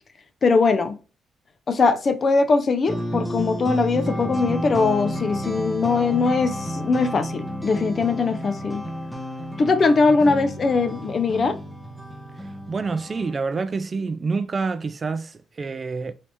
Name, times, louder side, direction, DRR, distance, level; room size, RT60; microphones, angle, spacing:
voice 1, 0.4-1.0 1.7-8.8 9.6-11.6, left 4 dB, 40° left, 0.4 m, -21 dB
sound 1, 2.9-13.3, equal, 5° left, 0.7 m, -31 dB
voice 2, 10.1-10.5 12.7-16.1, right 4 dB, 35° right, 0.3 m, -28 dB
3.2 x 2.8 x 3.0 m
cardioid pair, 90°, 0 cm